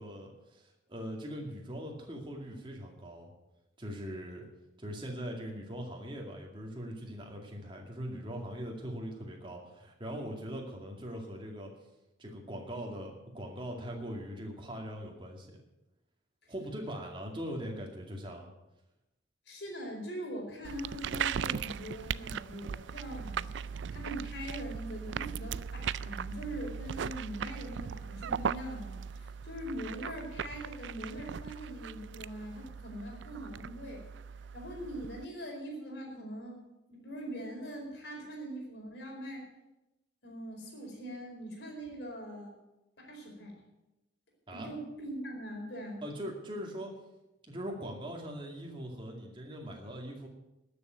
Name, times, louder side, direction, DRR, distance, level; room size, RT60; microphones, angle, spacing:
voice 1, 0.0-3.3 3.8-4.5 4.8-11.7 12.2-15.6 16.5-18.5 44.5-44.7 46.0-46.9 47.5-50.3, equal, 25° right, 0 dB, 2.2 m, -41 dB
voice 2, 19.5-34.0 34.5-36.6 36.9-39.4 40.2-42.5 43.0-43.5 44.5-46.0, equal, 60° left, 0 dB, 4.6 m, -42 dB
sound 1, 20.6-35.3, right 7 dB, 70° right, 0.3 m, -38 dB
12.5 x 7.1 x 9.2 m, 0.95 s
head